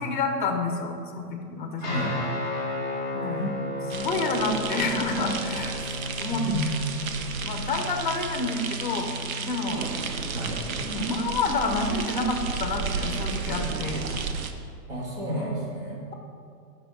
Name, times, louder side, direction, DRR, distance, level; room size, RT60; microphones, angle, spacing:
voice 1, 0.0-2.0 3.1-3.4 3.9-5.7 6.2-6.4 7.4-9.1 9.4-9.9 10.8-14.0, left 3 dB, 30° left, 4 dB, 0.7 m, -28 dB
Guitar, 1.8-11.6, left 1 dB, 10° right, 0.8 m, -35 dB
voice 2, 1.8-2.2 3.4-3.6 6.3-6.7 10.3-10.6 14.9-16.0, equal, 35° right, -3 dB, 1.7 m, -31 dB
sound 1, 3.9-14.5, right 5 dB, 60° right, 0.7 m, -33 dB
6.1 x 5.6 x 6.4 m, 2.3 s
hypercardioid pair, 175°, 48 cm